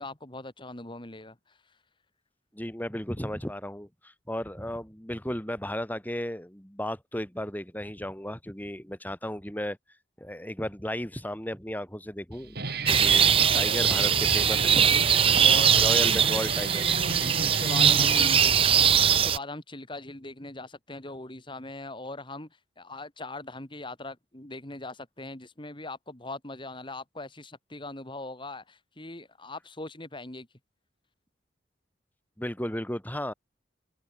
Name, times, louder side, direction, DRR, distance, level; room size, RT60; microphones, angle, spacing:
voice 1, 0.0-1.4 15.4-15.8 17.1-18.3 18.8-22.5 22.8-30.5, left 2 dB, 25° left, 2.8 m, -40 dB
voice 2, 2.5-9.8 10.2-14.8 15.7-17.0 32.4-33.3, equal, 10° left, 6.0 m, -34 dB
Guitar, 12.3-18.9, right 3 dB, 60° right, 5.6 m, -34 dB
sound 1, 12.9-19.4, right 8 dB, 30° right, 0.6 m, -21 dB
head